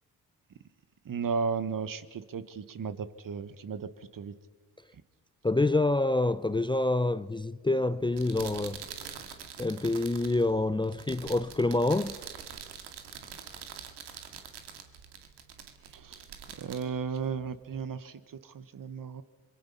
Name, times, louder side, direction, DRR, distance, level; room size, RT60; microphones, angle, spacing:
voice 1, 1.0-4.3 15.9-16.3 16.6-19.2, right 6 dB, 55° right, 1.5 m, -35 dB
voice 2, 5.4-8.8 9.6-12.2, left 2 dB, 10° left, 0.6 m, -27 dB
sound 1, 8.0-17.8, right 8 dB, 75° right, 2.2 m, -45 dB
25.0 x 23.0 x 5.6 m
supercardioid pair, 50°, 41 cm